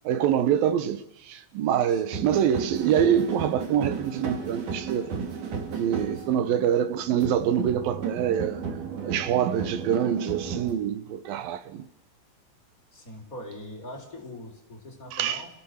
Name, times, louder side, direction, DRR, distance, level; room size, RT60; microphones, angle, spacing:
voice 1, 0.0-1.0 1.3-5.2 5.8-8.6 9.0-11.9 15.1-15.4, right 9 dB, 80° right, 3.0 m, -25 dB
voice 2, 1.9-2.2 6.1-6.5 12.9-15.5, left 1 dB, 25° left, 4.7 m, -42 dB
sound 1, 2.1-10.7, right 6 dB, 60° right, 4.2 m, -34 dB
29.5 x 17.0 x 6.5 m
omnidirectional pair, 4.1 m